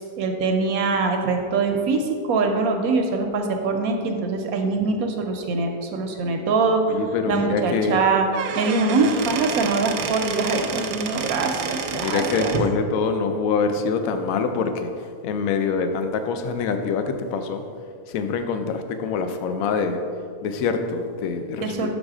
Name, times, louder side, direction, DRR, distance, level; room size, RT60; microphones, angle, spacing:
voice 1, 0.2-7.0 7.3-8.3 8.6-12.5 21.6-21.9, right 3 dB, 70° right, 4 dB, 0.9 m, -23 dB
voice 2, 6.9-8.0 11.9-14.9 15.2-17.6 18.1-20.0 20.4-21.9, left 5 dB, 70° left, 7 dB, 0.9 m, -25 dB
Squeak / Wood, 8.1-12.7, right 6 dB, 85° right, 1.2 m, -29 dB
6.5 x 4.0 x 4.8 m, 2.2 s
omnidirectional pair, 1.7 m